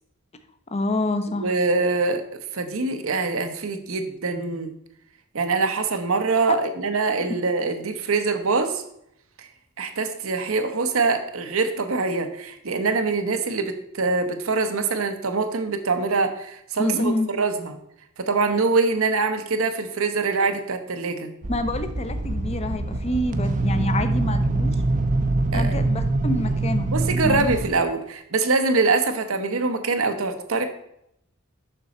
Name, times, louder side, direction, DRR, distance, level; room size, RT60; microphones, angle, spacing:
voice 1, 0.7-1.5 16.8-17.3 21.5-24.7 25.5-26.9 27.2-27.5, left 2 dB, 30° left, 9 dB, 0.7 m, -27 dB
voice 2, 1.4-2.2 2.5-4.7 5.3-8.8 9.4-9.5 9.8-17.8 18.2-21.3 25.5-25.8 26.9-30.7, right 3 dB, 70° right, 7 dB, 0.9 m, -24 dB
sound 1, 21.4-27.7, right 2 dB, 35° right, 0.6 m, -24 dB
6.8 x 6.1 x 4.3 m, 0.75 s
head